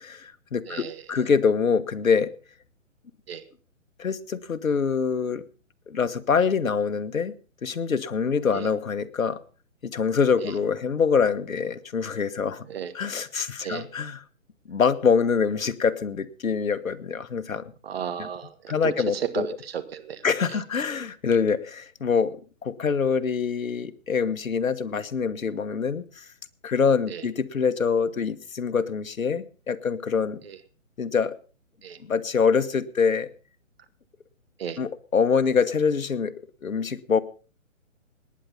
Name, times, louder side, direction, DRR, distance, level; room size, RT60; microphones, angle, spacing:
voice 1, 0.0-2.3 4.0-5.4 5.9-7.3 7.6-9.4 9.8-12.6 12.9-14.2 14.7-17.6 18.2-18.3 18.7-19.5 20.2-22.4 22.6-26.2 26.6-30.4 31.0-31.4 32.1-33.3 34.8-36.3 36.6-37.2, left 6 dB, 80° left, 11 dB, 1.3 m, -25 dB
voice 2, 0.7-1.2 3.3-3.4 8.5-8.7 10.4-10.5 12.6-12.9 13.6-13.9 17.8-20.2 20.5-20.6 27.1-27.2 30.4-30.6 31.8-32.0 34.6-34.8, right 8 dB, 45° right, 11 dB, 1.7 m, -34 dB
19.0 x 9.6 x 5.4 m, 0.38 s
hypercardioid pair, 150°, 41 cm